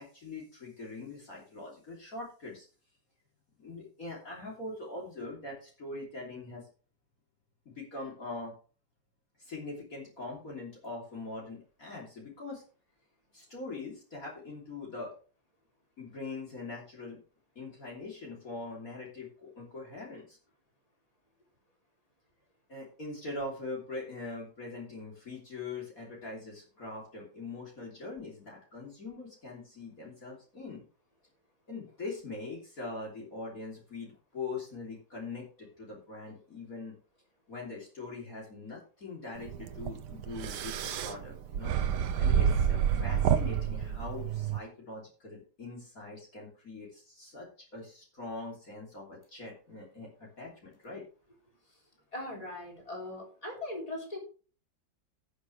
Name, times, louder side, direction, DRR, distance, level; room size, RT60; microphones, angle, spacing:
voice 1, 0.0-2.7 3.6-6.7 7.7-8.5 9.4-12.6 13.3-15.1 16.0-17.2 17.6-20.4 22.7-30.8 31.7-37.0 37.5-41.8 42.2-51.0, left 3 dB, 50° left, -3 dB, 3.5 m, -42 dB
sound 1, 39.4-44.6, right 8 dB, 70° right, 1.3 m, -29 dB
voice 2, 52.1-54.2, left 1 dB, 20° left, -1 dB, 3.8 m, -39 dB
17.5 x 6.4 x 3.3 m, 0.38 s
omnidirectional pair, 2.0 m